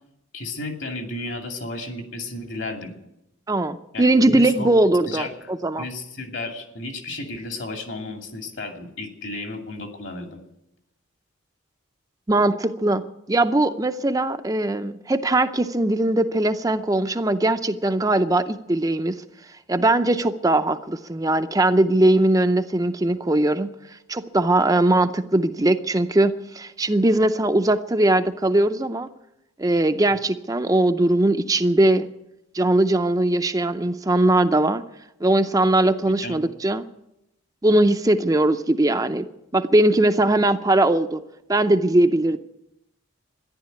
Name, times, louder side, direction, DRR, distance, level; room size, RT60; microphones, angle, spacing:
voice 1, 0.3-2.9 3.9-4.7 5.1-5.5 5.8-10.4 36.1-36.4, left 2 dB, 65° left, 3 dB, 2.6 m, -33 dB
voice 2, 3.5-5.8 12.3-19.2 19.7-23.7 24.1-29.1 29.6-32.1 32.5-34.8 35.2-36.8 37.6-39.2 39.5-41.2 41.5-42.4, right 1 dB, 20° right, 7 dB, 0.5 m, -20 dB
13.5 x 11.0 x 9.3 m, 0.86 s
head